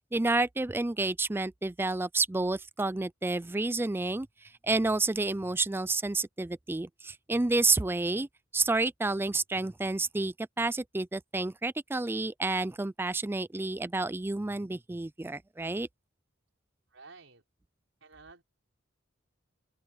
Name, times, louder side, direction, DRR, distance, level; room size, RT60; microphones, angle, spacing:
voice 1, 0.1-4.3 4.6-8.3 8.5-15.9, right 3 dB, 10° right, 0.4 m, -30 dB
voice 2, 16.9-17.4 18.0-18.4, right 4 dB, 90° right, 5.1 m, -52 dB
open air
head